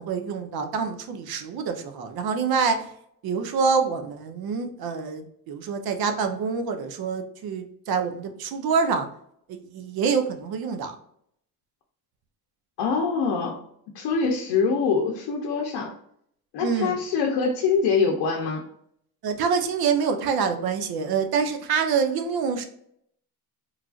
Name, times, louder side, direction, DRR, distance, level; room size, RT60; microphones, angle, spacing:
voice 1, 0.0-2.9 3.2-9.1 9.5-10.9 16.6-17.0 19.2-22.6, right 5 dB, 65° right, 7 dB, 0.6 m, -26 dB
voice 2, 12.8-13.6 13.9-15.9 16.5-18.6, left 5 dB, 80° left, 0 dB, 0.6 m, -24 dB
3.2 x 2.4 x 2.3 m, 0.70 s
cardioid pair, 125°, 40 cm